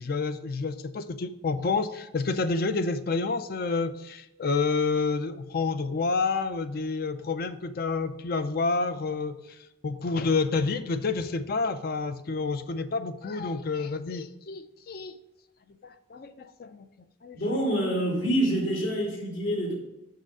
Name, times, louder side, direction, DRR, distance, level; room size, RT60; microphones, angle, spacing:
voice 1, 0.0-9.6 9.8-15.2 15.8-16.9 17.2-17.4, left 4 dB, 45° left, 11 dB, 0.4 m, -29 dB
voice 2, 17.3-19.7, right 1 dB, 75° left, -2 dB, 2.6 m, -26 dB
6.6 x 6.2 x 4.8 m, 0.93 s
head